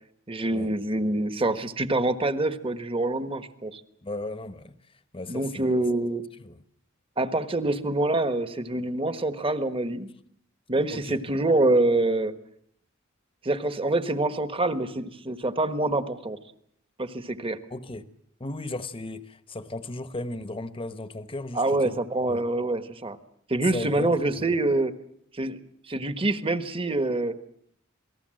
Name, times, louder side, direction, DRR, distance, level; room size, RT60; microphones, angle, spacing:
voice 1, 0.3-3.8 5.3-6.2 7.2-10.1 10.7-12.3 13.4-16.4 17.0-17.6 21.5-23.2 23.5-24.9 25.3-25.6 25.9-27.3, right 2 dB, 25° right, 1.3 m, -26 dB
voice 2, 4.0-4.8 5.1-5.7 6.4-6.6 10.9-11.2 17.7-18.1 18.4-22.5 23.7-24.1, left 2 dB, 25° left, 1.1 m, -36 dB
28.0 x 19.0 x 7.7 m
head